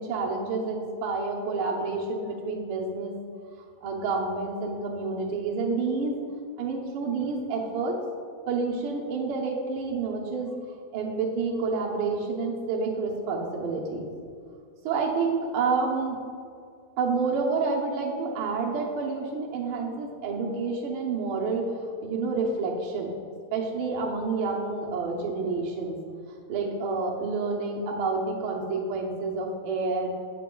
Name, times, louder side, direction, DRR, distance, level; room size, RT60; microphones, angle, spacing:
voice 1, 0.0-3.1 3.8-6.2 6.6-8.0 8.5-10.5 10.9-14.1 14.8-16.2 17.0-23.1 23.5-26.0 26.5-30.1, right 4 dB, 85° right, -3 dB, 1.2 m, -29 dB
8.3 x 6.8 x 3.8 m, 2.3 s
omnidirectional pair, 3.8 m